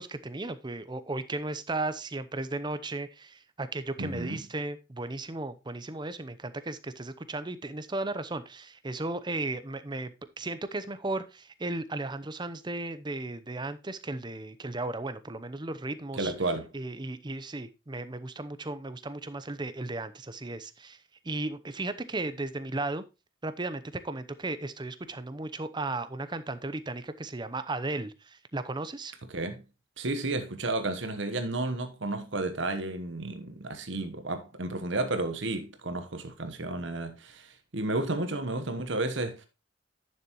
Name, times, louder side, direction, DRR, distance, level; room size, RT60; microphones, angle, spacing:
voice 1, 0.0-16.3 16.7-21.0 21.2-23.0 23.4-29.1, right 2 dB, 20° right, 0.7 m, -35 dB
voice 2, 4.0-4.4 16.1-16.7 29.3-29.6 30.0-39.5, right 2 dB, 65° right, 1.1 m, -32 dB
10.5 x 6.9 x 3.0 m
head